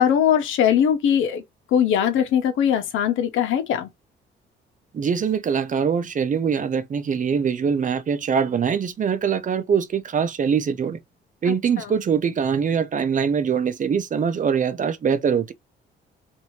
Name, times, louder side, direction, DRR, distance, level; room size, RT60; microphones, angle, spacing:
voice 1, 0.0-1.4 1.7-3.9, left 9 dB, 85° left, 0.9 m, -20 dB
voice 2, 4.9-11.0 11.4-15.5, right 7 dB, 40° right, 0.6 m, -23 dB
3.0 x 2.7 x 2.8 m
cardioid pair, 90°, 20 cm